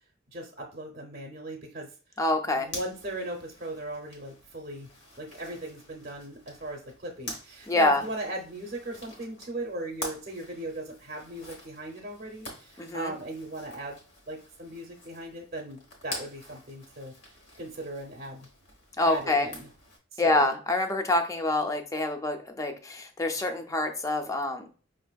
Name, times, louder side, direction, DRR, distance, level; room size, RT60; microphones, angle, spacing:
voice 1, 0.3-1.9 2.5-4.9 5.2-14.0 14.3-17.1 17.6-18.5 19.0-19.7 20.1-20.4, right 1 dB, 45° right, 0 dB, 0.6 m, -37 dB
voice 2, 2.2-2.7 7.7-8.0 12.8-13.1 19.0-19.5 20.2-24.7, left 2 dB, 15° left, 5 dB, 0.4 m, -26 dB
Zipper (clothing), 2.6-20.0, left 1 dB, 65° left, 1.2 m, -46 dB
5.2 x 2.5 x 2.3 m, 0.40 s
head